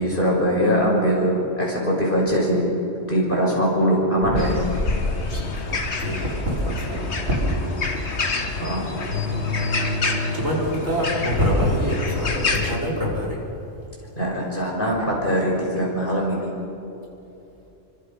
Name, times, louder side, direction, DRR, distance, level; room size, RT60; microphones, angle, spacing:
voice 1, 0.0-2.6 3.1-4.6 8.6-8.9 14.2-16.5, equal, 40° left, -3 dB, 6.2 m, -22 dB
sound 1, 4.4-12.8, left 3 dB, 55° left, 1.8 m, -28 dB
voice 2, 5.3-7.9 9.0-13.4, left 1 dB, 80° right, -4 dB, 5.7 m, -25 dB
28.5 x 25.0 x 5.5 m, 2.9 s
omnidirectional pair, 1.3 m